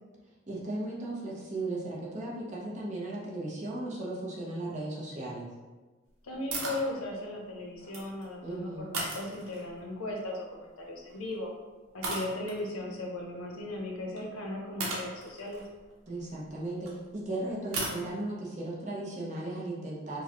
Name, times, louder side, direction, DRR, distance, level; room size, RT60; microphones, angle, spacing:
voice 1, 0.5-5.5 8.4-8.9 16.1-20.2, right 2 dB, 35° right, -5 dB, 0.7 m, -36 dB
voice 2, 6.2-11.5 11.9-15.6, left 1 dB, 85° left, 0 dB, 0.7 m, -37 dB
sound 1, 6.5-6.9 7.7-8.3 8.9-9.8 11.1-11.3 12.0-12.6 14.2-14.3 14.8-16.9 17.7-18.0, right 2 dB, 80° right, 0.8 m, -36 dB
4.7 x 2.2 x 2.9 m, 1.2 s
head